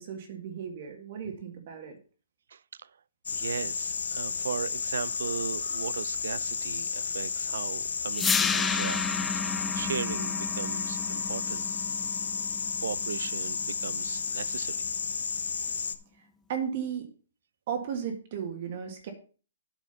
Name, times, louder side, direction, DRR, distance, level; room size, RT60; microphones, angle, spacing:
voice 1, 0.0-2.0 16.5-17.1 17.7-19.1, right 7 dB, 45° right, 1.8 m, -35 dB
voice 2, 2.5-2.9 3.3-9.0 9.3-11.7 12.8-14.9, right 7 dB, 70° right, 0.5 m, -37 dB
sound 1, 3.3-16.0, left 6 dB, 80° left, 0.9 m, -32 dB
sound 2, 8.1-14.2, left 5 dB, 10° left, 0.4 m, -32 dB
8.8 x 6.1 x 5.6 m
hypercardioid pair, 155°, 0 cm